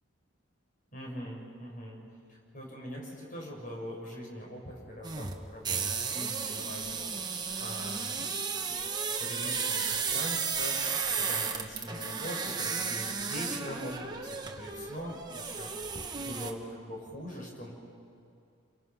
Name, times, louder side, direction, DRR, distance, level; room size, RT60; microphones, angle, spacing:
voice 1, 0.9-2.0 2.3-7.1 7.6-8.7 9.2-10.9 11.2-14.2 14.6-15.7 16.1-17.7, equal, 40° left, -1 dB, 6.1 m, -42 dB
sound 1, 5.0-16.5, right 5 dB, 20° right, 1.1 m, -34 dB
29.0 x 24.0 x 6.0 m, 2.5 s
head